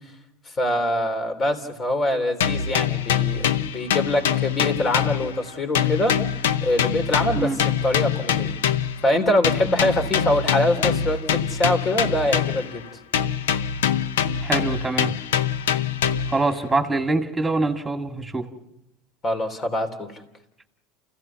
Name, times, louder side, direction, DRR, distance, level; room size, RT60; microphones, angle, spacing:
voice 1, 0.6-6.2 6.6-7.5 7.8-8.5 9.0-12.8 19.2-20.1, left 1 dB, 35° left, 7 dB, 3.5 m, -24 dB
sound 1, 2.4-5.5 5.7-9.0 9.4-12.8 13.1-16.4, left 8 dB, 90° left, 0.7 m, -24 dB
voice 2, 14.4-15.1 16.3-18.5, right 3 dB, 10° right, 5 dB, 2.2 m, -24 dB
29.5 x 16.0 x 5.9 m, 0.86 s
supercardioid pair, 95°, 0 cm